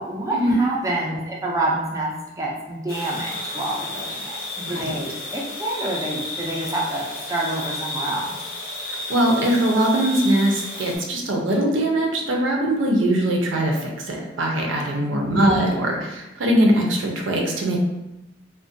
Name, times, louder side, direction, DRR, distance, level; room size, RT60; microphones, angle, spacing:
voice 1, 0.0-2.1 2.4-8.3 15.1-15.7, right 1 dB, 15° right, -4 dB, 0.3 m, -27 dB
sound 1, 2.9-11.0, left 2 dB, 50° left, 0.6 m, -32 dB
voice 2, 9.1-17.8, right 1 dB, 85° right, 0 dB, 0.5 m, -21 dB
2.5 x 2.1 x 2.5 m, 0.99 s
head